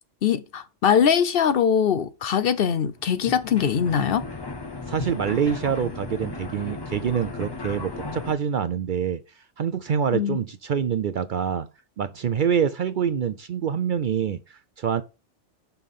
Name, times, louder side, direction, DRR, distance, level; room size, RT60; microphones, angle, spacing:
voice 1, 0.2-4.2 10.1-10.4, left 8 dB, 60° left, 0.7 m, -22 dB
Washer and Dryer, 3.0-8.3, left 3 dB, 25° left, 0.6 m, -35 dB
voice 2, 4.9-11.7 12.0-15.0, right 8 dB, 60° right, 0.6 m, -26 dB
5.6 x 5.5 x 6.5 m
omnidirectional pair, 1.2 m